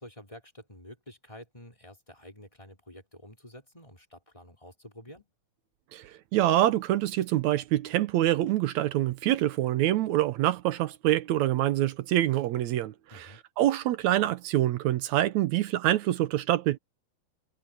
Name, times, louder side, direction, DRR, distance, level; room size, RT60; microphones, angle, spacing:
voice 1, 0.0-5.3 13.1-13.4, left 1 dB, 10° left, 4.5 m, -49 dB
voice 2, 5.9-16.8, right 14 dB, 80° right, 1.6 m, -26 dB
omnidirectional pair, 4.3 m